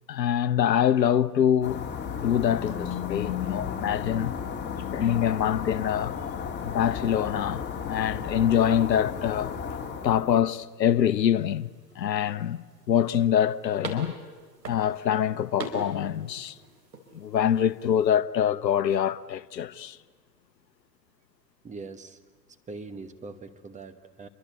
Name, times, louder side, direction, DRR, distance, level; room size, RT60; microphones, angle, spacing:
voice 1, 0.1-4.3 4.9-6.2 6.6-9.5 10.0-11.7 12.0-14.1 14.7-16.6 17.1-20.0, left 9 dB, 80° left, 1.0 m, -25 dB
sound 1, 1.6-10.4, left 7 dB, 20° left, 3.4 m, -34 dB
sound 2, 10.5-18.2, right 3 dB, 85° right, 5.0 m, -44 dB
voice 2, 21.6-22.2 22.7-24.3, right 3 dB, 15° right, 1.2 m, -41 dB
28.5 x 23.5 x 8.3 m
hypercardioid pair, 110°, 50 cm